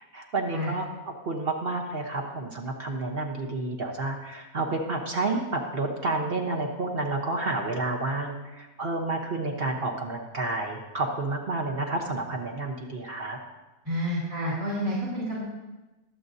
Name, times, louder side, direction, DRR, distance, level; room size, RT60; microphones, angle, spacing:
voice 1, 0.1-0.9 1.2-13.4, right 2 dB, 45° right, 1 dB, 1.1 m, -30 dB
voice 2, 13.8-15.4, equal, 60° right, -7 dB, 3.0 m, -29 dB
21.5 x 7.7 x 2.7 m, 1.1 s
omnidirectional pair, 1.6 m